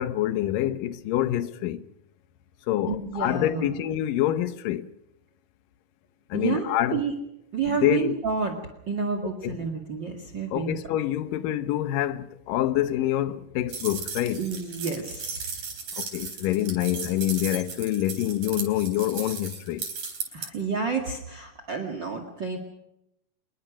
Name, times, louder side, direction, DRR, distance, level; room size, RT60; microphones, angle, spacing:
voice 1, 0.0-1.8 2.7-4.9 6.3-7.0 7.7-8.2 9.4-9.6 10.5-14.5 16.0-19.9, left 13 dB, 85° left, 2.6 m, -26 dB
voice 2, 2.9-3.8 6.3-7.1 7.5-8.6 8.9-10.7 14.4-15.6 20.3-22.6, right 5 dB, 40° right, 2.4 m, -30 dB
sound 1, 13.7-20.5, right 5 dB, 75° right, 5.8 m, -36 dB
26.0 x 22.0 x 6.2 m
omnidirectional pair, 3.8 m